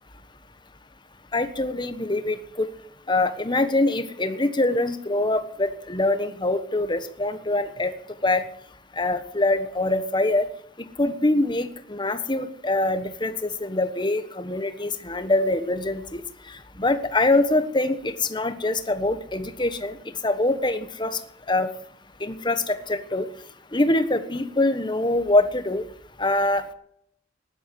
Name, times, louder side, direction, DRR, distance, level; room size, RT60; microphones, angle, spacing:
voice 1, 1.3-2.7 3.1-7.9 8.2-8.4 9.0-10.5 11.0-16.2 16.8-20.0 20.2-21.2 21.5-21.7 22.2-23.3 23.7-25.8 26.2-26.7, left 2 dB, 25° left, 10 dB, 1.3 m, -24 dB
16.0 x 11.5 x 7.8 m, 0.71 s
head